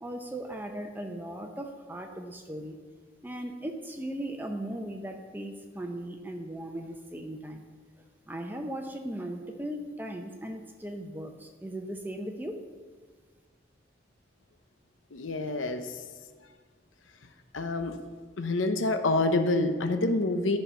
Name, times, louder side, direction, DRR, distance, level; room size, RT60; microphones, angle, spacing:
voice 1, 0.0-2.8 3.2-7.7 8.3-12.6, right 1 dB, 10° right, 4 dB, 0.6 m, -38 dB
voice 2, 15.1-16.0 17.5-18.0 18.4-20.6, left 2 dB, 85° left, 8 dB, 0.8 m, -27 dB
13.0 x 5.6 x 5.6 m, 1.5 s
head